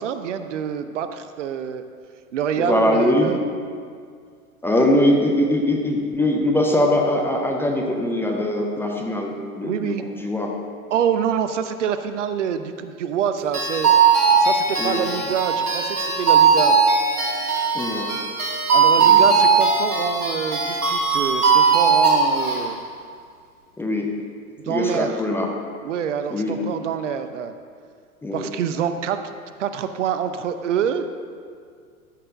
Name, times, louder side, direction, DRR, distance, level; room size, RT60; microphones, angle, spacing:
voice 1, 0.0-1.8 2.3-3.4 9.6-10.0 10.9-16.8 18.7-22.8 24.6-25.2 25.8-27.5 28.3-29.2 29.6-31.0, right 8 dB, 55° right, 9 dB, 0.7 m, -26 dB
voice 2, 2.6-3.3 4.6-10.5 14.8-15.0 17.7-18.1 19.0-19.2 23.8-24.1 24.7-25.5 26.3-26.6 28.2-28.5, left 1 dB, 5° left, 0 dB, 0.6 m, -22 dB
sound 1, 13.5-22.6, right 5 dB, 75° right, 2.2 m, -18 dB
13.0 x 4.4 x 6.4 m, 2.1 s
figure-of-eight pair, 95°, 44 cm